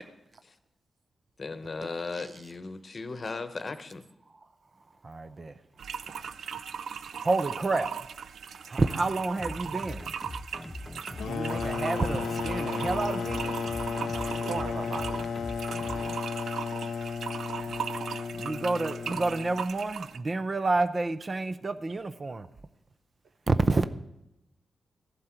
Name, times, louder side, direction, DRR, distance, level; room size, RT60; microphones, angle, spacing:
voice 1, 1.4-4.0, left 3 dB, 40° left, 0.9 m, -37 dB
voice 2, 5.0-5.5 7.2-7.9 8.7-10.0 11.2-13.6 18.4-22.5 23.5-23.8, right 3 dB, 35° right, 0.6 m, -29 dB
sound 1, 5.8-20.2, right 7 dB, 80° right, 0.4 m, -38 dB
sound 2, 9.4-16.2, left 1 dB, 15° left, 0.9 m, -41 dB
sound 3, 11.2-19.7, left 5 dB, 90° left, 0.6 m, -34 dB
voice 3, 14.1-15.2 16.4-16.5 17.5-17.8, right 4 dB, 65° right, 1.0 m, -38 dB
14.0 x 11.5 x 4.5 m
cardioid pair, 90°, 0 cm